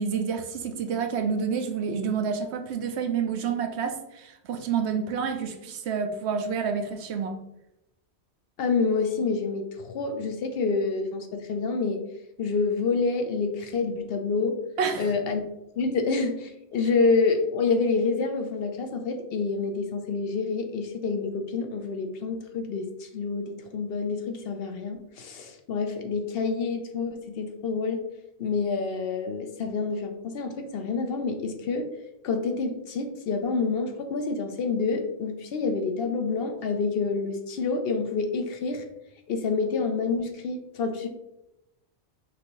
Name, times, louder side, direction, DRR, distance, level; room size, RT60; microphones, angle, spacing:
voice 1, 0.0-7.4 14.8-15.1, right 6 dB, 75° right, 5 dB, 0.9 m, -29 dB
voice 2, 8.6-12.0 12.4-14.6 15.0-15.4 15.8-28.0 28.4-31.9 32.2-38.8 39.3-41.1, left 4 dB, 65° left, 6 dB, 0.8 m, -27 dB
5.9 x 2.7 x 3.0 m, 0.89 s
omnidirectional pair, 1.1 m